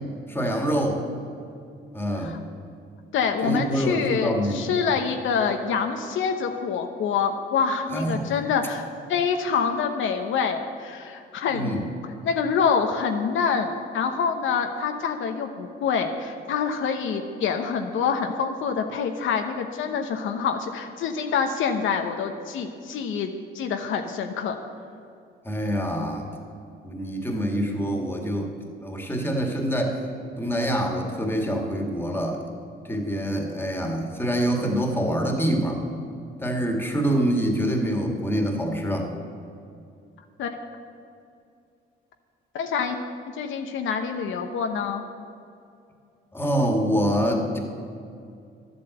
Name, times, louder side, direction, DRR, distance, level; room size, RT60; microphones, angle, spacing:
voice 1, 0.3-1.0 1.9-2.4 3.4-4.7 7.9-8.3 11.5-11.9 25.4-26.3 26.8-28.5 28.8-30.0 30.4-32.5 32.8-35.8 36.4-39.1 46.3-47.6, equal, 10° left, 2 dB, 2.0 m, -25 dB
voice 2, 3.1-11.8 12.2-24.6 40.4-40.5 42.5-43.0 43.4-45.0, left 6 dB, 75° left, 5 dB, 0.9 m, -26 dB
11.5 x 8.1 x 7.8 m, 2.4 s
cardioid pair, 90°, 20 cm